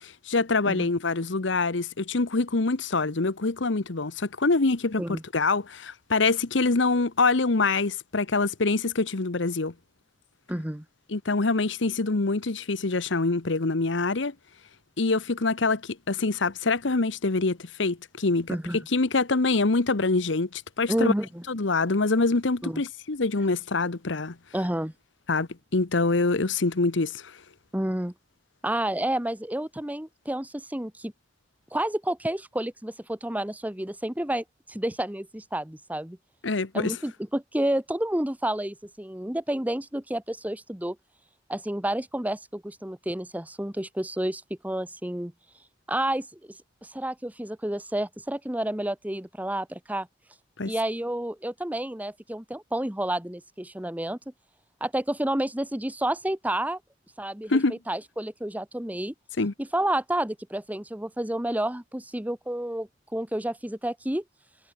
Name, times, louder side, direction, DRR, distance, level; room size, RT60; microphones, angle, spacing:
voice 1, 0.0-9.7 11.1-14.3 15.0-21.1 21.5-24.4 25.3-27.3 36.4-36.9 50.6-50.7 57.5-57.8 59.4-59.5, left 3 dB, 65° left, 1.1 m, -25 dB
voice 2, 10.5-10.8 18.5-18.8 20.9-21.4 22.6-22.8 24.5-24.9 27.7-28.1 28.6-31.1 31.7-36.2 36.7-41.0 41.5-45.3 45.9-46.4 46.8-50.1 50.6-54.2 54.8-56.8 57.2-59.1 59.6-64.2, right 1 dB, 10° right, 1.1 m, -30 dB
head